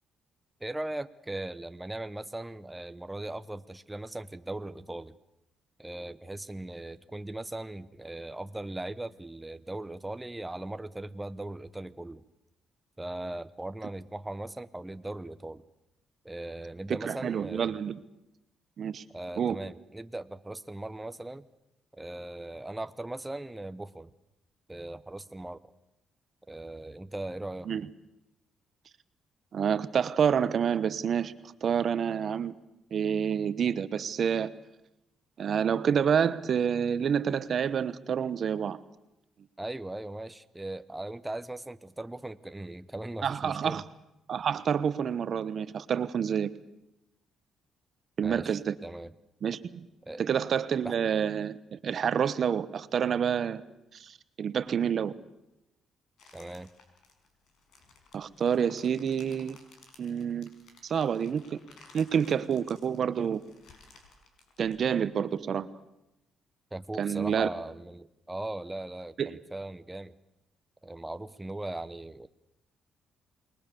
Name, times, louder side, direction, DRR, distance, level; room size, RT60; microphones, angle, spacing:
voice 1, 0.6-5.1 5.8-12.2 13.0-15.6 16.2-17.7 19.1-21.5 21.9-24.1 24.7-25.6 26.5-27.7 39.6-43.8 48.2-49.1 50.1-50.2 50.8-51.0 56.3-56.7 66.7-70.1 70.8-72.3, right 1 dB, 10° right, 11 dB, 0.9 m, -39 dB
voice 2, 16.9-18.0 18.8-19.0 19.4-19.6 27.7-27.9 29.5-31.3 31.6-32.5 32.9-34.5 35.4-38.8 43.2-43.8 44.3-46.5 48.2-48.7 49.4-49.9 50.2-53.6 53.9-55.1 58.1-59.6 60.0-60.5 60.8-61.6 61.9-63.4 64.6-65.7 67.0-67.5 69.2-69.3, right 7 dB, 55° right, 14 dB, 1.1 m, -28 dB
sound 1, 56.2-65.4, left 4 dB, 70° left, 5.3 m, -57 dB
27.5 x 20.5 x 7.0 m, 0.90 s
cardioid pair, 90°, 0 cm